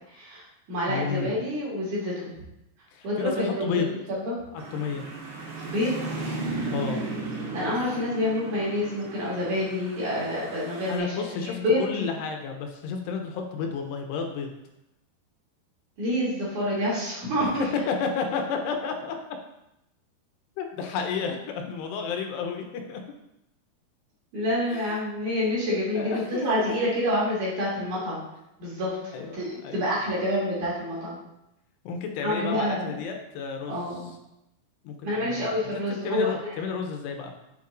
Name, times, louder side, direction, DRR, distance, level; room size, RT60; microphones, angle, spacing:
voice 1, 0.0-2.3 3.0-4.4 5.7-6.2 7.5-11.8 16.0-17.7 24.3-28.2 28.6-31.2 32.2-32.9 33.7-34.1 35.0-36.6, left 1 dB, 50° right, -6 dB, 3.4 m, -28 dB
voice 2, 0.9-1.4 2.9-3.9 4.7-5.0 6.7-7.1 10.9-14.5 17.4-17.5 17.9-19.2 20.6-23.0 24.7-25.0 26.0-26.7 29.1-29.8 31.8-33.9 34.8-37.3, left 5 dB, 85° left, 4 dB, 3.0 m, -31 dB
sound 1, 4.6-11.0, right 3 dB, 70° right, 3.3 m, -35 dB
8.4 x 7.3 x 2.6 m, 0.85 s
omnidirectional pair, 4.7 m